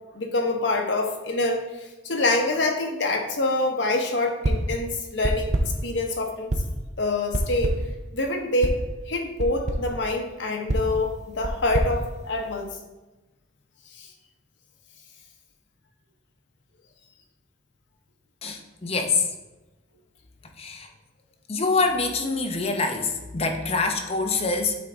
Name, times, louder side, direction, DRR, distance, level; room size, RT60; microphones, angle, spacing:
voice 1, 0.1-6.5 7.0-7.7 8.1-8.7 9.1-12.7 13.9-14.1, left 2 dB, 70° left, 3 dB, 0.9 m, -26 dB
sound 1, 4.4-4.8 5.2-5.9 6.5-6.9 7.3-8.0 8.6-8.9 9.4-9.9 10.7-12.8, right 1 dB, 40° right, 0.6 m, -27 dB
voice 2, 18.4-19.2 20.6-20.9 21.5-24.8, left 4 dB, 35° left, 4 dB, 0.7 m, -25 dB
8.3 x 3.7 x 3.5 m, 1.1 s
head